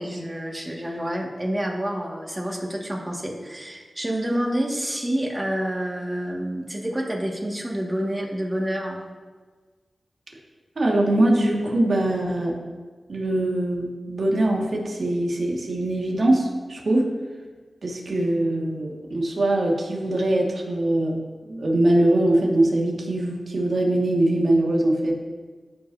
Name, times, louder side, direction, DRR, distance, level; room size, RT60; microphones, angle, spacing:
voice 1, 0.0-9.0, equal, 25° right, -1 dB, 1.9 m, -28 dB
voice 2, 10.8-12.6 13.1-17.1 17.8-25.1, right 1 dB, 65° right, -1 dB, 1.9 m, -22 dB
15.0 x 5.4 x 2.7 m, 1.4 s
cardioid pair, 45°, 0 cm